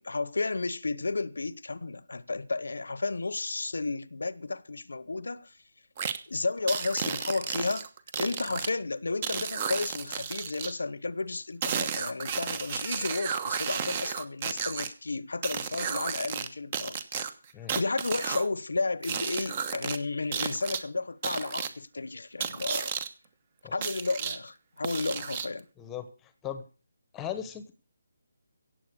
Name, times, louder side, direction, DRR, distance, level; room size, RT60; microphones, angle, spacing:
voice 1, 0.0-5.5 6.3-7.9 8.2-17.0 17.7-22.9 23.7-25.6, left 3 dB, 85° left, 1.0 m, -32 dB
sound 1, 6.0-6.2 6.7-8.7 9.2-10.7 11.6-14.9 15.4-16.5 16.7-18.5 19.0-20.0 20.3-20.8 21.2-21.7 22.4-23.1 23.8-24.4 24.8-25.6, right 7 dB, 30° right, 1.2 m, -33 dB
voice 2, 25.8-26.1 26.4-26.6 27.1-27.7, left 10 dB, 10° left, 1.1 m, -37 dB
16.5 x 7.8 x 6.4 m
hypercardioid pair, 165°, 0 cm